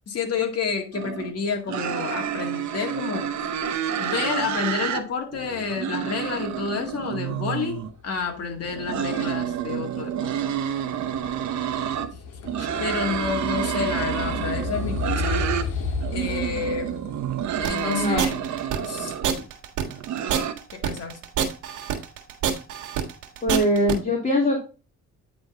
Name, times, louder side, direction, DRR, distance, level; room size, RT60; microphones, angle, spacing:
voice 1, 0.1-3.3 4.0-10.5 12.6-15.5 16.1-17.0 17.6-18.4 18.8-19.1 20.7-21.2, left 5 dB, 55° left, 3 dB, 2.1 m, -29 dB
sound 1, 0.9-1.3 1.7-5.0 5.3-7.9 8.6-12.1 12.4-15.7 16.0-19.3 19.8-20.5, right 9 dB, 70° right, 1.1 m, -29 dB
sound 2, 8.1-19.4, left 4 dB, 85° left, 1.8 m, -34 dB
sound 3, 17.6-24.0, right 9 dB, 90° right, 1.6 m, -26 dB
voice 2, 17.8-18.2 23.4-24.6, left 1 dB, 25° left, -1 dB, 2.3 m, -22 dB
9.5 x 3.9 x 3.8 m, 0.33 s
cardioid pair, 90°, 30 cm